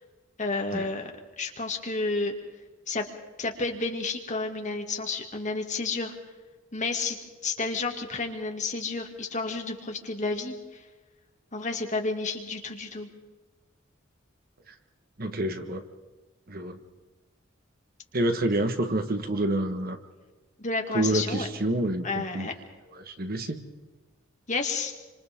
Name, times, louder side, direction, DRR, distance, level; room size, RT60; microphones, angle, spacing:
voice 1, 0.4-1.1 1.4-2.3 2.9-3.0 3.4-6.1 6.7-7.2 7.4-10.8 11.5-13.1 20.6-21.5 22.0-22.5 24.5-24.9, left 3 dB, 40° left, 2 dB, 2.4 m, -31 dB
voice 2, 15.2-15.8 16.5-16.8 18.1-20.0 20.9-22.5 23.0-23.6, right 1 dB, 50° right, 7 dB, 1.5 m, -28 dB
28.0 x 26.0 x 3.7 m, 1.2 s
head